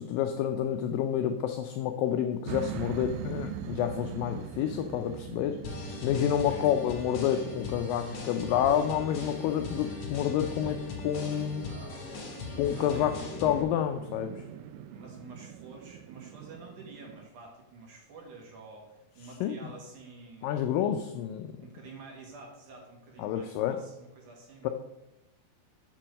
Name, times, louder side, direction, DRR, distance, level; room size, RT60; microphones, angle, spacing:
voice 1, 0.0-5.6 6.0-10.8 11.0-11.7 12.6-13.1 13.4-14.4 19.4-19.6 20.4-21.5 23.2-23.8 24.6-24.7, left 10 dB, 85° left, 7 dB, 2.0 m, -29 dB
sound 1, 2.5-17.3, right 10 dB, 80° right, 2.2 m, -43 dB
sound 2, 5.6-13.6, left 4 dB, 55° left, 2.7 m, -39 dB
voice 2, 6.2-6.7 11.6-12.1 12.8-13.5 14.9-20.8 21.4-24.7, right 3 dB, 60° right, 0 dB, 2.7 m, -49 dB
7.4 x 7.0 x 6.4 m, 0.94 s
omnidirectional pair, 4.6 m